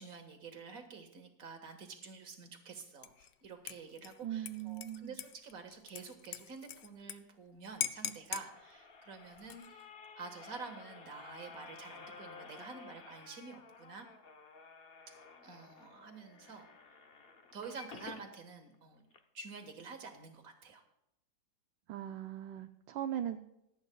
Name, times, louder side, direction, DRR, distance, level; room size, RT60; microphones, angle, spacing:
voice 1, 0.0-9.9 10.2-14.1 15.1-17.0 17.5-19.0 19.3-20.8, right 5 dB, 45° right, 4 dB, 1.8 m, -49 dB
Dishes pots and pans / Liquid, 3.0-3.3 3.7-7.2 7.4-7.5 7.8-8.5 9.3-9.8, left 10 dB, 75° left, 1.2 m, -42 dB
voice 2, 4.2-5.2 21.9-23.4, right 11 dB, 75° right, 7 dB, 1.3 m, -39 dB
sound 1, 8.1-18.3 18.7-18.8 19.1-19.2, left 5 dB, 50° left, 0.7 m, -53 dB
26.0 x 8.8 x 2.3 m, 0.83 s
omnidirectional pair, 2.1 m